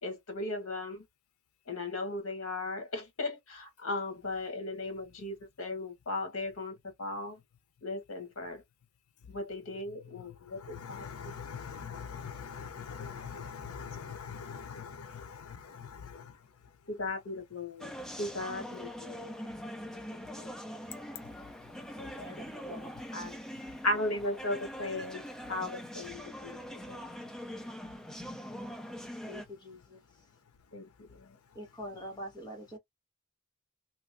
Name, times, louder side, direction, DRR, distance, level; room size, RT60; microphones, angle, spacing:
voice 1, 0.0-1.0 1.7-7.4 7.8-8.6 9.3-11.1 13.0-13.1 16.9-17.9 18.2-19.3 19.9-20.5 22.0-22.2 22.7-22.9 23.1-23.4 23.8-27.1 30.7-31.4, left 2 dB, 70° left, 1.2 m, -37 dB
voice 2, 10.6-16.3, left 6 dB, 90° left, 0.6 m, -43 dB
sound 1, 17.8-29.4, equal, 5° left, 0.5 m, -43 dB
voice 3, 22.2-22.9 29.2-30.0 31.5-32.8, equal, 20° left, 1.2 m, -44 dB
3.0 x 2.3 x 2.5 m
head